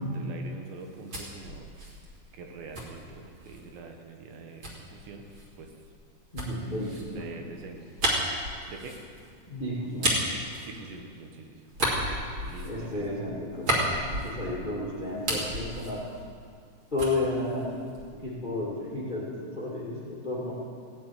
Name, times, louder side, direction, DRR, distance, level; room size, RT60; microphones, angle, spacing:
voice 1, 0.0-1.7 2.3-5.3 5.6-5.7 7.2-7.8 8.7-9.0 10.6-11.7 12.4-13.0, right 4 dB, 80° right, 3 dB, 3.5 m, -44 dB
sound 1, 0.7-3.7 4.6-11.3 11.7-14.7 15.0-16.7 17.0-18.3, right 1 dB, 35° right, 2.5 m, -33 dB
voice 2, 6.3-7.3 9.5-10.1 12.6-16.0 16.9-17.7 18.2-20.5, left 2 dB, 20° left, -6 dB, 1.1 m, -32 dB
17.0 x 7.4 x 9.2 m, 2.2 s
omnidirectional pair, 5.1 m